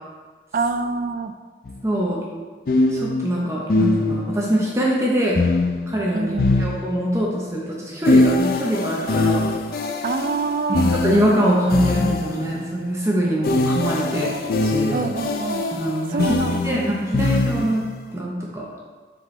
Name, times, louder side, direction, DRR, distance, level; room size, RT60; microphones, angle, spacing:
voice 1, 0.5-1.3 6.1-6.7 10.0-10.9 14.9-15.7 16.1-17.5, right 4 dB, 45° right, 9 dB, 0.3 m, -26 dB
sound 1, 1.7-1.8 2.7-4.5 5.4-7.3 8.1-12.6 13.4-17.9, left 2 dB, 55° left, 0.4 m, -22 dB
voice 2, 1.8-2.2 2.9-5.4 5.9-6.3 6.6-9.4 10.7-14.3 14.6-15.1 15.7-17.8 18.1-18.6, equal, 15° right, -4 dB, 0.8 m, -23 dB
7.2 x 4.3 x 3.2 m, 1.4 s
head